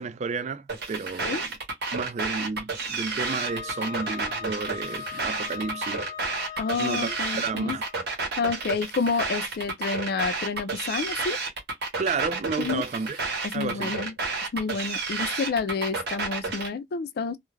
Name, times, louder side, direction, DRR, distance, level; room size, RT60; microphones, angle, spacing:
voice 1, 0.0-1.5 1.9-6.1 6.4-7.8 12.0-13.2 13.5-13.9, right 4 dB, 40° right, 0.3 m, -32 dB
sound 1, 0.7-16.7, right 4 dB, 65° right, 0.9 m, -31 dB
Wind instrument woodwind instrument, 3.3-7.9, left 7 dB, 25° left, 0.6 m, -39 dB
voice 2, 6.6-7.8 8.4-11.4 12.6-12.8 13.4-14.1 14.5-17.4, left 4 dB, 60° left, 0.4 m, -29 dB
2.3 x 2.1 x 3.1 m
head